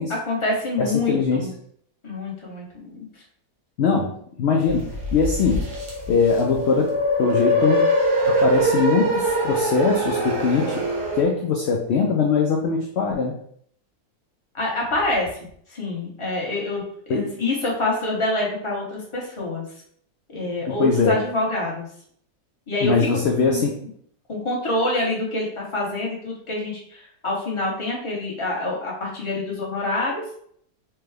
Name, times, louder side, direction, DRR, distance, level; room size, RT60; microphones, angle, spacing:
voice 1, 0.1-1.5 2.0-3.2 14.5-15.3 15.7-19.6 20.3-21.9 22.7-23.6 24.3-30.2, left 2 dB, 25° left, -3 dB, 0.8 m, -26 dB
voice 2, 0.8-1.5 3.8-5.7 6.1-7.9 8.2-10.8 11.1-13.3 17.1-17.3 20.7-21.2 22.8-23.8, left 5 dB, 80° left, 0 dB, 0.6 m, -22 dB
sound 1, 4.7-11.2, equal, 85° right, 1.6 m, -23 dB
4.5 x 2.2 x 3.3 m, 0.64 s
omnidirectional pair, 1.7 m